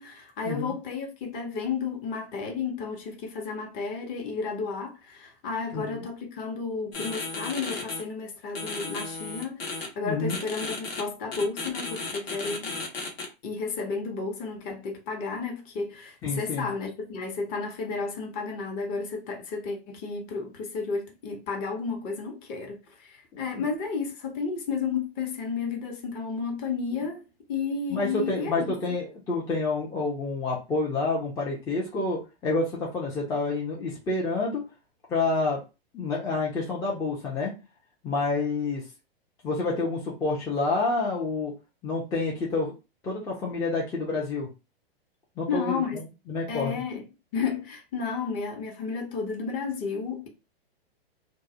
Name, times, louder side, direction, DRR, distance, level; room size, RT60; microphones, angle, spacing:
voice 1, 0.0-12.7 13.4-27.2 27.5-28.7 45.5-46.0 46.5-47.0 47.3-50.3, left 5 dB, 30° left, 0.8 m, -32 dB
sound 1, 6.9-8.0 8.6-9.9 10.3-11.0 11.3-13.3, left 3 dB, 75° left, 1.0 m, -34 dB
voice 2, 10.0-10.4 16.2-16.7 23.3-23.6 27.9-34.6 35.1-35.6 35.9-37.5 38.0-38.8 39.4-41.5 41.8-42.7 43.0-44.5 45.4-46.0 46.3-46.8, left 3 dB, 10° left, 0.4 m, -28 dB
2.3 x 2.0 x 2.7 m
hypercardioid pair, 115°, 31 cm